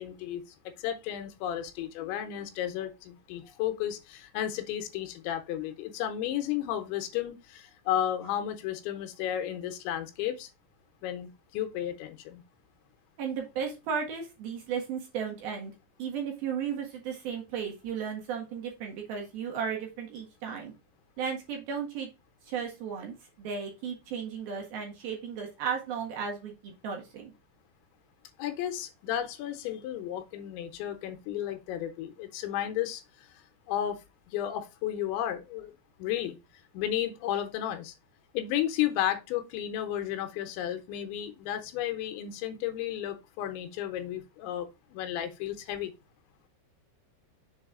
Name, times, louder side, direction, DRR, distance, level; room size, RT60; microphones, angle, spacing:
voice 1, 0.0-10.5 11.0-12.4 28.4-34.0 34.3-35.7 36.0-36.4 36.7-37.9 38.3-45.9, left 11 dB, 80° left, 3.2 m, -33 dB
voice 2, 13.2-15.7 16.0-20.7 21.2-22.1 22.5-27.3, right 7 dB, 65° right, 2.9 m, -35 dB
7.4 x 4.0 x 3.7 m
omnidirectional pair, 5.3 m